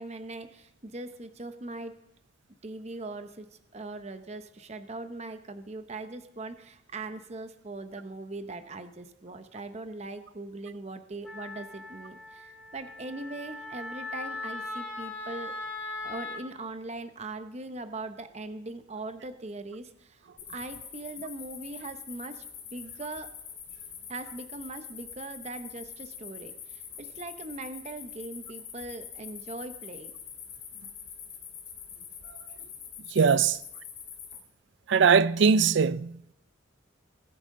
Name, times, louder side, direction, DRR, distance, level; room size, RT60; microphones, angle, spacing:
voice 1, 0.0-2.0 2.6-3.5 3.7-15.5 16.0-22.4 22.7-23.3 24.1-30.1, right 2 dB, 35° right, 0.7 m, -40 dB
Wind instrument woodwind instrument, 11.2-16.4, left 3 dB, 10° left, 5.5 m, -39 dB
sound 1, 20.4-34.4, left 7 dB, 45° left, 2.8 m, -44 dB
voice 2, 33.1-33.6 34.9-36.2, right 6 dB, 60° right, 0.4 m, -21 dB
20.0 x 9.0 x 3.7 m
head